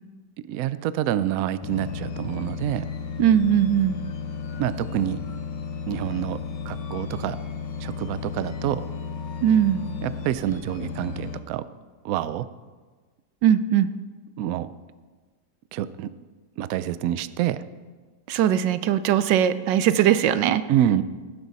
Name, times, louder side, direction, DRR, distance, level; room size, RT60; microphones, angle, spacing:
voice 1, 0.5-2.8 4.5-5.2 5.9-6.4 6.7-7.4 7.8-8.8 10.0-11.7 12.0-12.5 14.4-14.7 15.7-16.1 16.6-17.6 20.7-21.0, right 11 dB, 70° right, 15 dB, 0.8 m, -27 dB
sound 1, 1.6-11.4, left 5 dB, 85° left, 1.6 m, -34 dB
voice 2, 3.2-4.0 9.4-9.8 13.4-13.9 18.3-20.6, right 10 dB, 90° right, 13 dB, 1.3 m, -20 dB
18.5 x 9.9 x 4.1 m, 1.4 s
omnidirectional pair, 1.9 m